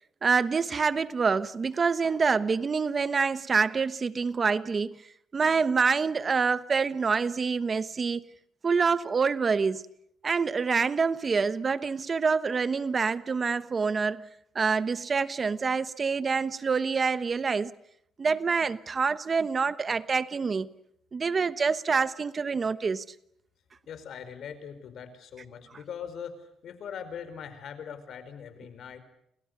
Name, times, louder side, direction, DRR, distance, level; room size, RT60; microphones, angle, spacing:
voice 1, 0.2-4.9 5.3-8.2 8.6-9.9 10.2-14.3 14.5-17.7 18.2-20.7 21.1-23.0, right 5 dB, 40° right, 1.1 m, -26 dB
voice 2, 23.9-29.0, left 7 dB, 65° left, 4.9 m, -41 dB
29.5 x 28.5 x 6.8 m
cardioid pair, 90°, 0 cm